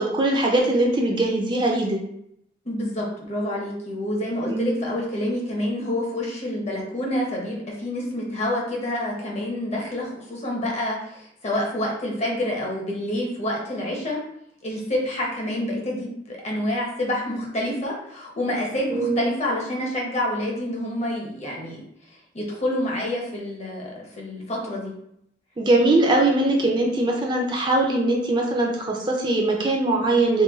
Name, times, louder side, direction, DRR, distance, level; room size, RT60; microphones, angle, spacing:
voice 1, 0.0-2.0 4.5-4.9 18.9-19.3 25.6-30.4, right 2 dB, 25° right, -1 dB, 0.4 m, -21 dB
voice 2, 2.6-14.2 14.6-21.8 22.3-24.9, left 1 dB, 40° left, -2 dB, 0.8 m, -28 dB
3.1 x 2.2 x 3.4 m, 0.75 s
head